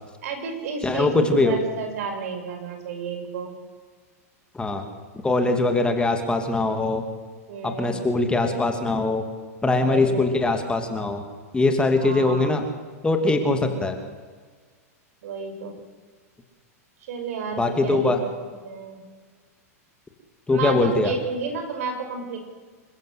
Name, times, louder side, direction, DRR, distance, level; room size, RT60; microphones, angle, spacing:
voice 1, 0.2-3.5 7.5-8.1 9.8-10.3 12.0-12.6 13.4-14.0 15.2-15.7 17.0-19.0 20.5-22.4, right 5 dB, 65° right, 5 dB, 6.0 m, -32 dB
voice 2, 0.8-1.6 4.5-4.8 5.2-7.0 7.6-9.2 9.6-11.2 11.5-12.6 13.0-13.9 17.6-18.2 20.5-21.1, left 2 dB, 10° left, 5 dB, 2.7 m, -22 dB
27.5 x 14.5 x 8.1 m, 1.5 s
hypercardioid pair, 115°, 8 cm